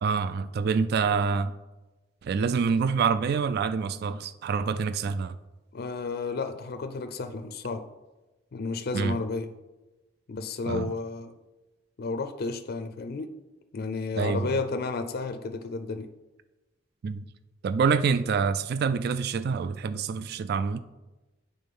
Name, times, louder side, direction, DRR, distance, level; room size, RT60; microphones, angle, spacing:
voice 1, 0.0-1.5 2.2-5.4 8.9-9.2 10.7-10.9 14.2-14.5 17.0-17.2 17.6-20.8, right 5 dB, 55° right, 0.3 m, -26 dB
voice 2, 5.7-7.9 8.5-9.5 10.3-11.3 12.0-13.3 13.7-16.1, left 3 dB, 55° left, 0.4 m, -32 dB
8.4 x 3.8 x 5.3 m
head